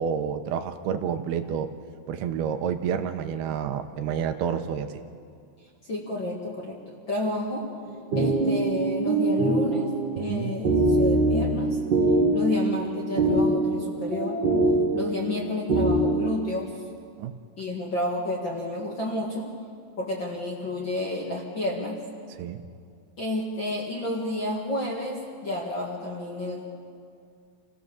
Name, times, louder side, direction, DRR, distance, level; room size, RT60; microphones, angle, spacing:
voice 1, 0.0-1.7 2.1-4.9 10.2-10.5 17.2-17.4 22.3-22.6, right 8 dB, 80° right, 8 dB, 2.7 m, -29 dB
voice 2, 5.8-7.7 8.2-11.9 12.3-14.4 14.9-16.7 17.6-19.6 20.0-22.0 23.2-26.7, left 1 dB, 40° left, -2 dB, 1.8 m, -30 dB
sound 1, 7.8-16.4, right 2 dB, 40° right, 1.8 m, -24 dB
27.0 x 16.5 x 7.0 m, 2.3 s
omnidirectional pair, 4.7 m